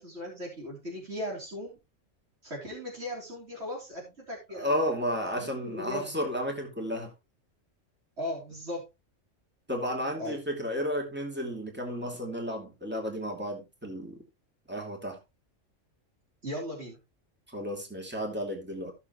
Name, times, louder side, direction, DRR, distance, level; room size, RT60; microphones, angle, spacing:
voice 1, 0.0-1.8 2.4-4.8 5.2-6.1 8.2-8.8 10.2-10.4 16.4-17.0, left 1 dB, 60° right, 3.9 m, -38 dB
voice 2, 4.5-7.1 9.7-14.2 14.7-15.2 17.5-18.9, equal, 10° right, 2.7 m, -32 dB
15.5 x 6.8 x 3.1 m
omnidirectional pair, 1.3 m